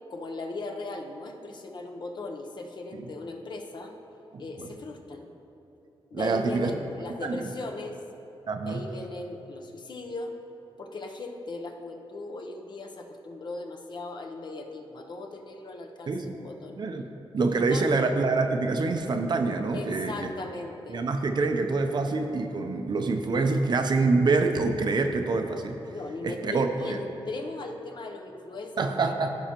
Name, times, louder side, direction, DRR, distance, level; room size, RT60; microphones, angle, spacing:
voice 1, 0.1-3.9 4.4-5.3 6.1-8.0 8.6-10.3 10.8-16.8 17.4-17.8 19.7-21.0 25.9-29.1, left 2 dB, 50° left, 3 dB, 0.8 m, -38 dB
voice 2, 6.1-6.7 7.2-7.4 8.5-8.8 16.1-16.2 16.8-17.1 17.3-20.1 20.9-25.8 26.2-27.0 28.8-29.3, right 3 dB, 50° right, 5 dB, 0.6 m, -26 dB
15.0 x 5.7 x 3.0 m, 2.9 s
wide cardioid pair, 115°, 10 cm